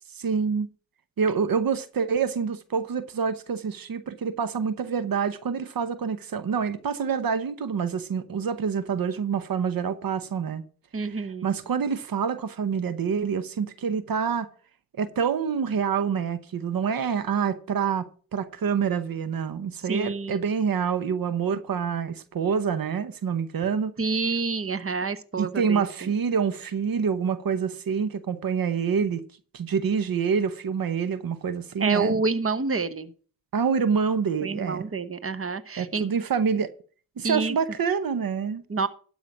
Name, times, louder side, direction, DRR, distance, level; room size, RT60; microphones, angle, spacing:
voice 1, 0.1-0.7 1.2-10.6 11.0-14.5 15.0-23.9 25.4-29.2 29.5-32.2 33.5-34.9 35.8-36.7 37.2-38.6, right 6 dB, 80° right, 0.8 m, -27 dB
voice 2, 10.9-11.6 19.9-20.5 24.0-26.1 31.8-33.1 34.4-36.0 37.2-37.5 38.7-38.9, right 4 dB, 40° right, 1.1 m, -28 dB
12.0 x 5.6 x 5.9 m
cardioid pair, 60°, 34 cm